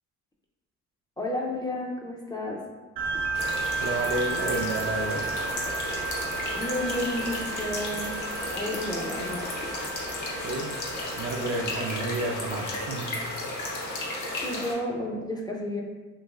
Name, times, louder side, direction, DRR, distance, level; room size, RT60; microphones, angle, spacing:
voice 1, 1.2-2.6 6.5-8.2 8.5-9.5 14.4-15.8, left 1 dB, 15° left, -2 dB, 0.4 m, -31 dB
sound 1, 3.0-13.8, right 4 dB, 85° right, 0.7 m, -34 dB
sound 2, 3.3-14.7, left 2 dB, 70° left, 0.8 m, -34 dB
voice 2, 3.8-5.3 10.4-10.8 11.1-13.1, right 2 dB, 45° right, 2 dB, 0.5 m, -30 dB
3.0 x 3.0 x 2.3 m, 1.3 s
cardioid pair, 90°, 30 cm